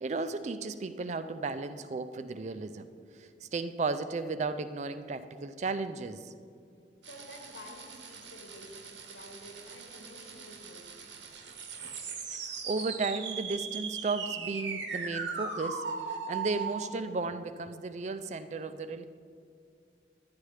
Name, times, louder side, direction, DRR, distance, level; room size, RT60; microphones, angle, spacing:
voice 1, 0.0-2.9 3.2-6.3 12.5-19.1, right 3 dB, 35° right, 11 dB, 0.3 m, -34 dB
sound 1, 7.0-16.8, right 5 dB, 75° right, 1.0 m, -39 dB
voice 2, 7.1-11.2, left 1 dB, 75° left, 1 dB, 1.3 m, -50 dB
10.5 x 10.0 x 3.2 m, 2.3 s
head